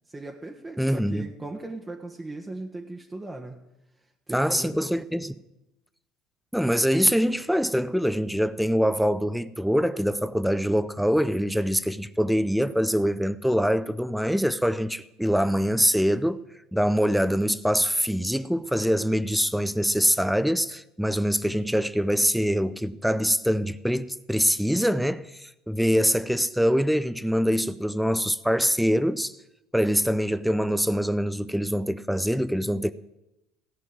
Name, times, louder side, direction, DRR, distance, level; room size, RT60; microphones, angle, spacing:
voice 1, 0.1-3.6 4.3-4.9, right 2 dB, 20° right, 1.3 m, -38 dB
voice 2, 0.8-1.3 4.3-5.3 6.5-16.4 16.7-29.3 29.7-32.9, equal, ahead, 0.6 m, -24 dB
15.0 x 5.5 x 9.0 m
hypercardioid pair, 75°, 0 cm